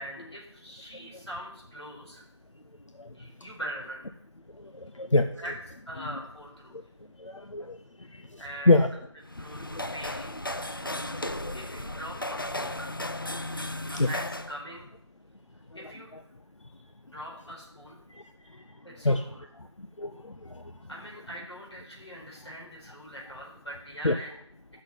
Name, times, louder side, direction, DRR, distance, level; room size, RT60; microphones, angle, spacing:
voice 1, 0.0-2.2 3.1-4.2 5.4-5.5 5.9-6.8 8.1-8.8 9.4-10.3 11.5-12.9 13.9-14.9 15.7-16.2 17.1-18.0 18.8-19.5 20.9-24.3, right 1 dB, 60° left, -3 dB, 4.5 m, -42 dB
voice 2, 4.8-5.3 7.2-7.8 8.1-8.4 8.7-8.9 9.7-9.8 11.4-11.5 14.0-14.1 18.1-18.2 19.0-19.2 20.0-20.6 24.0-24.1, left 2 dB, 85° left, 7 dB, 0.7 m, -25 dB
sound 1, 9.2-14.6, left 1 dB, 45° left, 0.5 m, -35 dB
9.5 x 6.5 x 5.5 m, 0.72 s
figure-of-eight pair, 175°, 16 cm